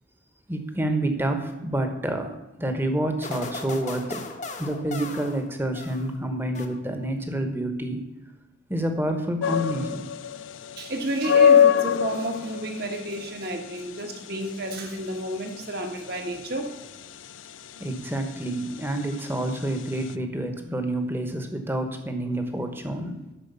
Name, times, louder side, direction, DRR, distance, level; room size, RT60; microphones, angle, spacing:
voice 1, 0.5-4.2 4.6-8.0 8.7-10.1 17.8-23.2, right 1 dB, 10° right, 6 dB, 1.1 m, -28 dB
sound 1, 3.2-6.2 6.5-7.2, left 3 dB, 40° left, 1.0 m, -38 dB
sound 2, 9.4-20.1, left 8 dB, 90° left, 0.5 m, -25 dB
voice 2, 10.8-16.7, right 1 dB, 55° right, 4 dB, 1.6 m, -31 dB
10.0 x 6.2 x 6.9 m, 1.0 s
head